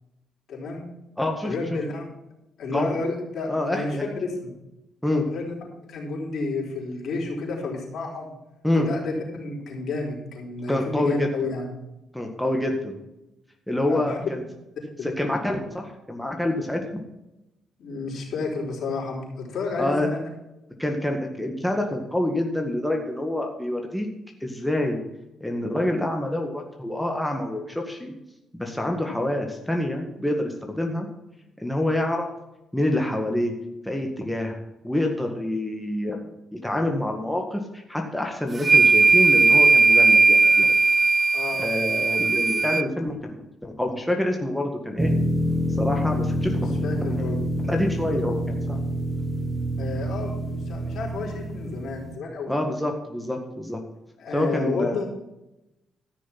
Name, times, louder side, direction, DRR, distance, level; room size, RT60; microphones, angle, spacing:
voice 1, 0.5-0.9 1.4-2.1 2.6-4.5 5.3-5.5 5.9-8.3 8.7-11.7 13.9-14.3 15.0-15.1 17.8-20.2 41.3-41.6 46.4-47.4 49.8-52.6 54.2-55.1, left 3 dB, 65° left, -2 dB, 4.5 m, -31 dB
voice 2, 1.2-1.5 2.7-3.0 3.5-4.0 5.0-5.3 8.6-8.9 10.7-11.3 12.1-12.9 13.7-14.4 15.0-17.0 19.8-20.1 20.8-24.1 24.4-25.0 25.4-28.1 28.5-31.1 31.6-32.3 32.7-33.6 33.8-34.6 34.8-36.2 36.5-40.7 41.6-45.1 45.8-46.6 47.0-47.1 47.7-48.8 52.5-53.8 54.3-55.1, left 1 dB, 5° left, 2 dB, 1.8 m, -27 dB
sound 1, 38.6-42.8, right 3 dB, 30° right, 0.5 m, -17 dB
sound 2, 45.0-52.2, equal, 15° right, 1.0 m, -27 dB
14.0 x 6.4 x 6.0 m, 0.92 s
cardioid pair, 90°, 0 cm